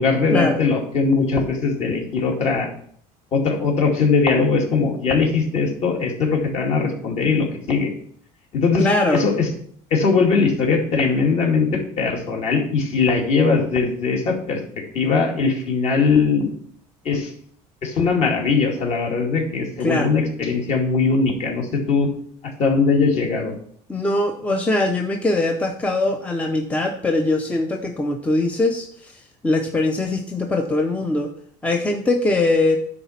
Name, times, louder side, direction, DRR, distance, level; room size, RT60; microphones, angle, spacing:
voice 1, 0.0-2.7 3.3-7.9 8.5-9.5 9.9-14.6 14.9-16.5 17.0-17.3 17.8-22.1 22.6-23.5, left 4 dB, 45° left, 0 dB, 2.4 m, -20 dB
voice 2, 8.8-9.2 19.8-20.1 23.9-31.3 31.6-32.8, left 2 dB, 10° left, 4 dB, 0.6 m, -21 dB
9.8 x 4.1 x 7.2 m, 0.62 s
cardioid pair, 145°, 15 cm